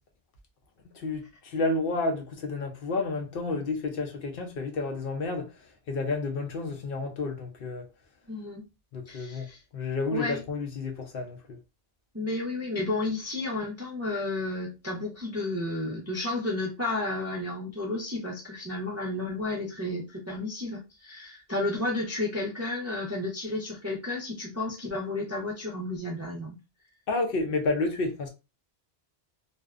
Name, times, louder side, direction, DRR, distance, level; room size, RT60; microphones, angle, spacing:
voice 1, 0.9-5.5 5.9-7.9 8.9-11.6 27.1-28.3, left 3 dB, 65° left, 0.7 m, -30 dB
voice 2, 8.3-8.6 9.1-9.6 10.1-10.4 12.1-26.5, left 2 dB, 25° right, 0.3 m, -32 dB
2.5 x 2.1 x 2.3 m
omnidirectional pair, 1.1 m